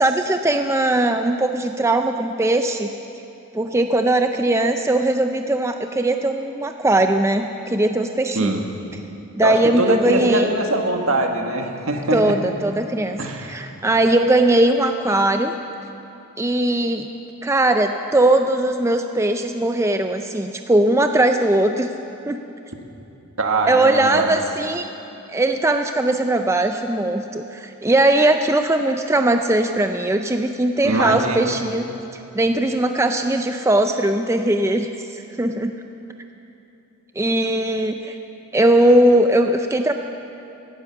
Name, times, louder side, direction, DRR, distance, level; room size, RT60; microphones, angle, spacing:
voice 1, 0.0-2.9 3.5-8.6 9.4-10.5 12.1-15.5 16.4-17.1 17.4-21.9 22.3-22.4 23.7-24.9 25.3-31.9 32.3-35.7 37.2-38.2 38.5-39.9, right 1 dB, 10° right, 6 dB, 0.4 m, -19 dB
voice 2, 9.4-12.4 13.2-13.5 23.4-24.3 30.8-31.4, right 2 dB, 70° right, 3 dB, 1.6 m, -22 dB
16.5 x 12.0 x 6.9 m, 2.9 s
head